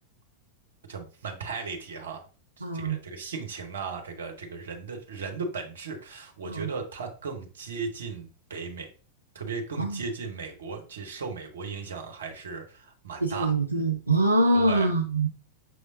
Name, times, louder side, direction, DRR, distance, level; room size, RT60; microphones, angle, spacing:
voice 1, 0.9-2.2 2.6-8.9 9.3-13.5 14.5-14.9, right 4 dB, 65° right, 4 dB, 1.0 m, -36 dB
voice 2, 2.6-3.0 6.5-6.7 9.8-10.0 13.2-15.3, right 2 dB, 85° right, 3 dB, 0.4 m, -24 dB
5.8 x 3.2 x 2.7 m, 0.39 s
figure-of-eight pair, 90°, 0 cm